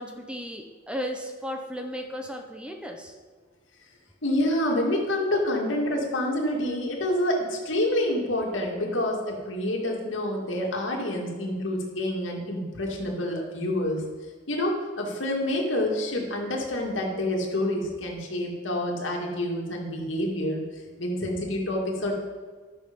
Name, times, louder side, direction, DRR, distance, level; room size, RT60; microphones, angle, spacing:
voice 1, 0.0-3.2, equal, 5° right, 4 dB, 0.8 m, -35 dB
voice 2, 4.2-14.0 14.5-20.6 21.0-22.1, left 1 dB, 80° left, -1 dB, 2.2 m, -27 dB
12.5 x 6.4 x 5.3 m, 1.4 s
head